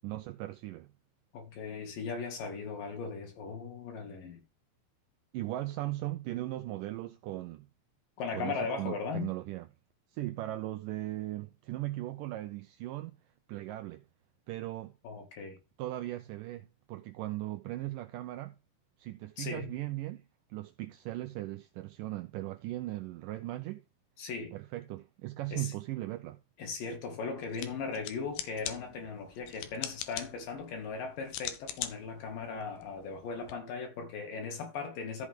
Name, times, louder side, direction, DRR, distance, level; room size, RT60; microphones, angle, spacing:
voice 1, 0.0-0.9 5.3-7.7 8.3-9.7 10.1-13.2 13.5-14.0 14.5-14.9 15.8-18.5 19.0-20.3 20.5-23.8 24.5-26.4, right 16 dB, 90° right, 1.9 m, -38 dB
voice 2, 1.3-4.4 8.2-9.3 15.0-15.6 19.4-19.7 24.2-24.5 25.5-25.7 26.6-35.3, left 5 dB, 65° left, 3.7 m, -38 dB
sound 1, 27.4-33.5, left 11 dB, 80° left, 2.9 m, -43 dB
14.0 x 4.8 x 3.6 m
omnidirectional pair, 4.4 m